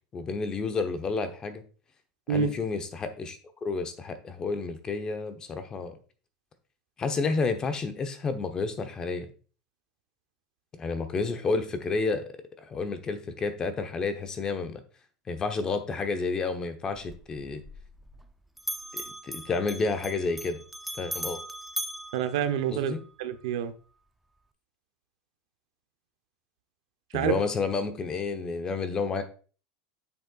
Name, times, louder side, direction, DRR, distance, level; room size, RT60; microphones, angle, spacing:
voice 1, 0.1-1.6 2.3-6.0 7.0-9.3 10.7-12.2 12.6-14.8 15.3-17.6 18.9-20.6 21.0-21.4 22.7-23.0 27.1-29.3, left 4 dB, 25° left, 0.9 m, -30 dB
Bell, 16.9-18.3 18.6-23.1, right 1 dB, 5° right, 0.4 m, -39 dB
voice 2, 22.1-23.7 27.1-27.4, right 8 dB, 80° right, 0.8 m, -28 dB
8.4 x 6.7 x 2.4 m
supercardioid pair, 140°, 3 cm